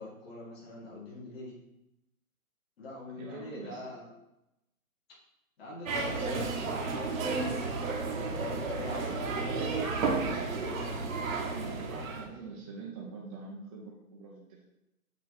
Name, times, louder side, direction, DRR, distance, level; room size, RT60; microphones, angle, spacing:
voice 1, 0.0-1.5 2.8-4.1 5.6-9.8, left 1 dB, 45° left, -4 dB, 2.3 m, -43 dB
voice 2, 3.2-4.0 11.4-14.7, right 4 dB, 25° right, -4 dB, 0.7 m, -44 dB
sound 1, 5.9-12.3, right 3 dB, 65° right, 1.4 m, -32 dB
7.9 x 3.2 x 4.0 m, 0.89 s
hypercardioid pair, 155°, 43 cm